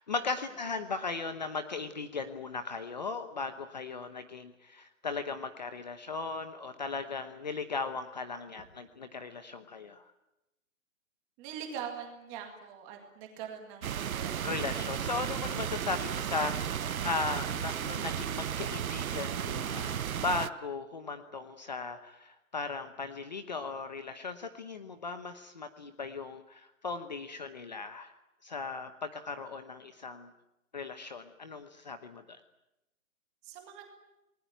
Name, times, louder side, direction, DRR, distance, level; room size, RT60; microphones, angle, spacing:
voice 1, 0.0-10.1 14.4-28.1 28.4-30.3 30.7-32.4, left 4 dB, 30° left, 9 dB, 1.0 m, -37 dB
voice 2, 11.4-14.5 15.1-15.4 15.9-16.0 33.4-33.9, right 8 dB, 10° right, 3 dB, 2.0 m, -43 dB
sound 1, 13.8-20.5, right 9 dB, 75° right, 0.9 m, -34 dB
28.5 x 20.0 x 9.1 m, 0.93 s
hypercardioid pair, 180°, 43 cm